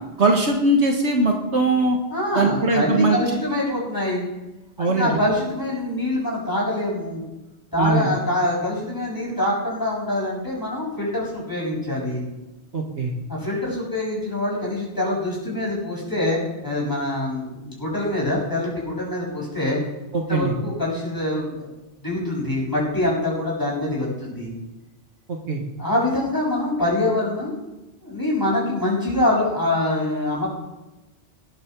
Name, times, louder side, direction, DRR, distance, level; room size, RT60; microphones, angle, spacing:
voice 1, 0.2-2.0 2.4-3.2 4.8-5.2 7.8-8.1 12.7-13.1 20.1-20.5 25.3-25.6, right 2 dB, 70° right, 2 dB, 2.0 m, -20 dB
voice 2, 2.1-4.2 4.8-7.2 7.7-12.2 13.3-19.8 20.3-21.7 22.0-24.5 25.8-27.5 28.0-30.5, left 1 dB, 15° left, -4 dB, 7.0 m, -24 dB
19.5 x 10.5 x 4.7 m, 1.0 s
omnidirectional pair, 1.2 m